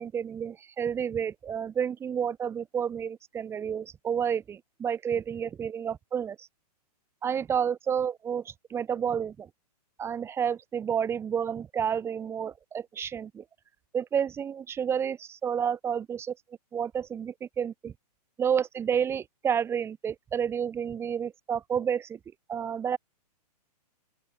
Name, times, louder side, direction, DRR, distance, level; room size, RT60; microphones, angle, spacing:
voice 1, 0.0-6.5 7.2-9.5 10.0-13.4 13.9-16.3 16.7-17.9 18.4-22.2 22.5-23.0, right 8 dB, 10° right, 5.9 m, -30 dB
open air
hypercardioid pair, 165°, 21 cm